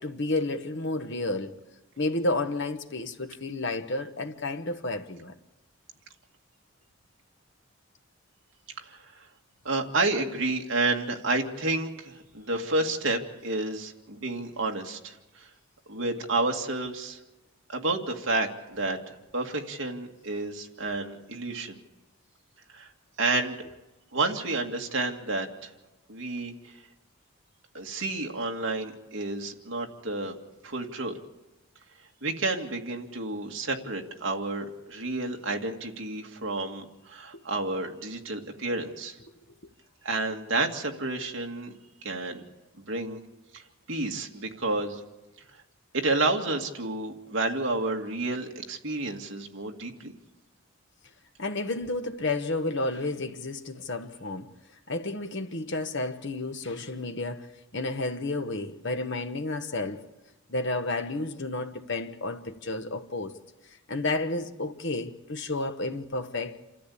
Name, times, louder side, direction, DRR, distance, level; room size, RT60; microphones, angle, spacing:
voice 1, 0.0-1.5 2.0-5.3 51.4-54.5 54.9-60.0 60.5-63.4 63.9-66.6, left 2 dB, 55° left, 1.2 m, -31 dB
voice 2, 8.9-9.2 9.6-15.5 15.9-17.2 17.7-21.8 22.7-22.9 23.2-23.6 24.1-25.7 26.1-26.8 27.7-30.3 30.6-31.2 32.2-39.2 40.0-41.8 42.0-42.4 42.9-43.2 43.5-43.6 43.9-45.0 45.9-50.1, right 2 dB, 60° right, 2.1 m, -30 dB
28.5 x 14.0 x 8.5 m
head